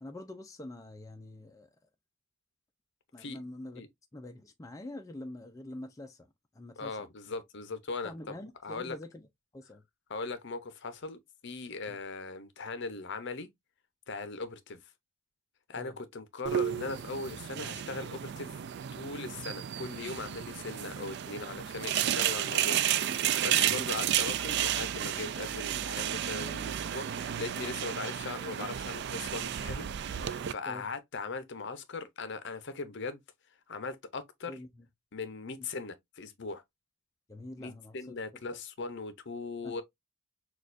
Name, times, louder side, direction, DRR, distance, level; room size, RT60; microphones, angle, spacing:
voice 1, 0.0-1.7 3.1-6.3 6.5-7.1 8.0-9.2 9.5-9.8 11.9-12.0 15.8-15.9 22.2-22.3 23.6-23.9 26.4-26.6 30.7-30.9 34.5-34.8 37.3-38.1 39.6-39.7, left 1 dB, 15° left, 0.4 m, -45 dB
voice 2, 6.8-8.4 8.6-9.0 10.1-13.5 14.1-14.8 15.7-18.5 18.9-33.2 33.7-34.6 35.1-36.6 37.6-39.8, left 4 dB, 55° left, 0.7 m, -39 dB
sound 1, 16.5-30.5, right 10 dB, 55° right, 0.3 m, -32 dB
6.2 x 2.4 x 2.5 m
head